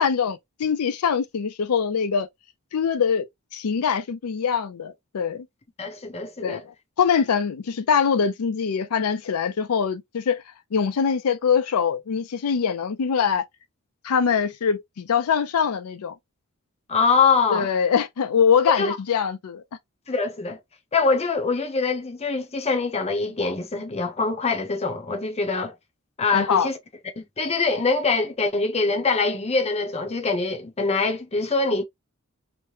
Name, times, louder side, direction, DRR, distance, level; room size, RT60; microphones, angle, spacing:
voice 1, 0.0-2.3 2.7-5.5 6.4-6.6 7.0-10.4 10.7-13.4 14.0-16.1 17.5-19.6 26.3-26.7, left 6 dB, 80° left, 0.4 m, -23 dB
voice 2, 5.8-6.6 16.9-17.7 18.7-19.0 20.1-20.6 20.9-25.7 26.2-26.8 27.2-31.8, left 4 dB, 30° left, 0.7 m, -24 dB
3.1 x 2.1 x 2.7 m
head